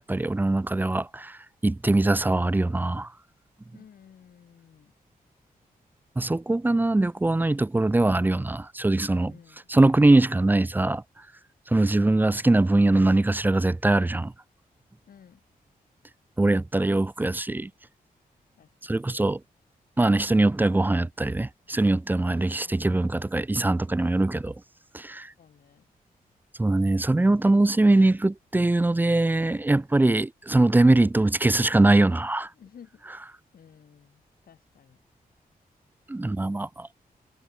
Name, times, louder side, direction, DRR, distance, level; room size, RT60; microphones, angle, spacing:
voice 1, 0.0-3.1 6.2-9.3 9.7-11.0 11.7-14.3 16.4-17.7 18.9-19.4 20.0-24.6 24.9-25.3 26.6-32.5 36.1-36.9, right 2 dB, 10° right, 0.6 m, -22 dB
voice 2, 3.7-4.9 9.3-9.7 15.0-15.4 18.6-19.0 22.2-23.2 25.4-25.9 32.5-33.0 33.5-35.0, left 8 dB, 70° left, 6.1 m, -54 dB
wide cardioid pair, 160°, 16 cm